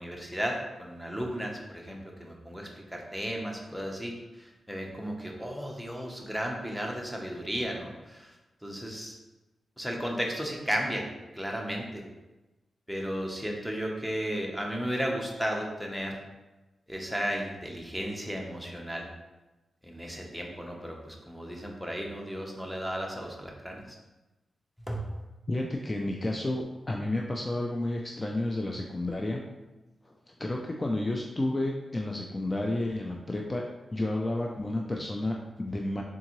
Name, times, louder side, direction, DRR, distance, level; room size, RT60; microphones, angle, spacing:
voice 1, 0.0-8.3 8.6-9.2 9.8-11.1 11.3-12.0 12.9-16.2 16.9-19.1 19.8-23.8 24.9-25.0, equal, ahead, 0 dB, 0.8 m, -34 dB
voice 2, 25.5-29.4 30.1-30.2 30.4-33.6 33.9-36.0, left 1 dB, 30° left, 0 dB, 0.4 m, -31 dB
3.7 x 3.5 x 3.0 m, 1.1 s
cardioid pair, 75°, 0 cm